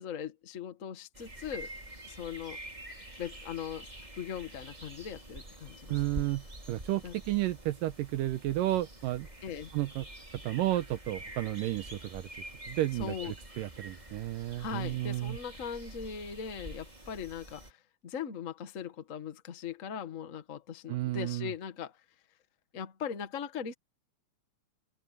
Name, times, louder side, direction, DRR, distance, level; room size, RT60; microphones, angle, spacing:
voice 1, 0.0-1.7 2.1-2.6 3.2-3.9 4.2-6.3 7.0-7.1 9.4-9.7 13.0-13.3 14.6-17.8 18.0-22.0 22.7-23.7, left 7 dB, 55° left, 0.8 m, -39 dB
sound 1, 1.1-17.7, right 1 dB, 10° right, 4.1 m, -47 dB
voice 2, 5.9-9.3 9.7-10.1 10.4-12.3 12.7-15.4 20.9-21.5, right 15 dB, 75° right, 2.3 m, -32 dB
omnidirectional pair, 4.2 m